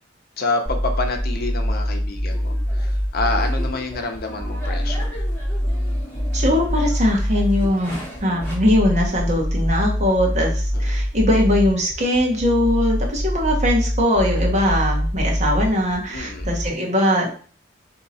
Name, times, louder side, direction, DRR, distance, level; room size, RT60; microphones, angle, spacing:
voice 1, 0.4-5.2 10.7-10.8 16.1-16.5, left 3 dB, 55° left, 4 dB, 0.7 m, -27 dB
sound 1, 0.7-16.7, equal, 5° right, 0.9 m, -24 dB
sound 2, 2.3-8.6, equal, 10° left, 2.0 m, -39 dB
voice 2, 6.3-17.3, left 1 dB, 40° right, 0 dB, 1.1 m, -21 dB
3.8 x 2.8 x 4.1 m, 0.42 s
head